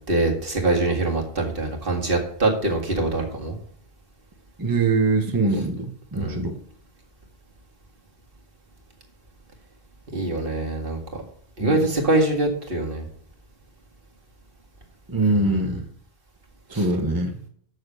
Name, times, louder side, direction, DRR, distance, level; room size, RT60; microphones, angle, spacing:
voice 1, 0.1-3.6 6.2-6.4 10.1-11.0 11.6-13.1 15.4-15.5 16.7-16.8, right 2 dB, 55° right, 1 dB, 2.1 m, -23 dB
voice 2, 4.6-6.6 11.6-11.8 15.1-15.9 16.7-17.4, right 3 dB, 20° right, 3 dB, 1.0 m, -23 dB
7.1 x 6.5 x 6.5 m, 0.62 s
omnidirectional pair, 1.1 m